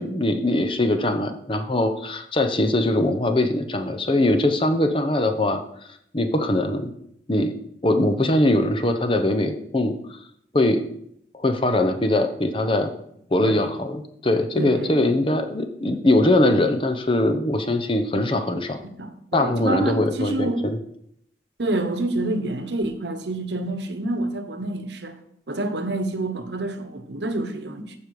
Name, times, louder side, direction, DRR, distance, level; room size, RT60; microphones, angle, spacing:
voice 1, 0.0-5.6 6.1-6.9 7.3-7.5 7.8-10.2 10.5-10.8 11.3-12.9 13.3-18.8 19.3-20.8, left 1 dB, 30° left, 0.9 m, -21 dB
voice 2, 14.6-15.2 19.0-20.6 21.6-25.2 25.5-27.9, right 2 dB, 75° right, 1.1 m, -28 dB
14.5 x 5.2 x 4.8 m
head